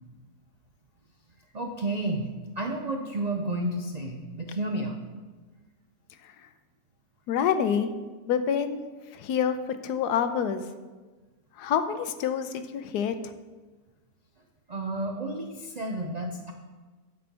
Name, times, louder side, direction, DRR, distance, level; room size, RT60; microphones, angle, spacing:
voice 1, 1.5-5.0 14.7-16.5, right 1 dB, 75° right, 2 dB, 0.3 m, -31 dB
voice 2, 7.3-7.9 8.3-8.8 9.1-10.7 11.5-13.3, left 8 dB, 85° left, 9 dB, 1.2 m, -27 dB
9.4 x 4.4 x 6.8 m, 1.3 s
omnidirectional pair, 1.7 m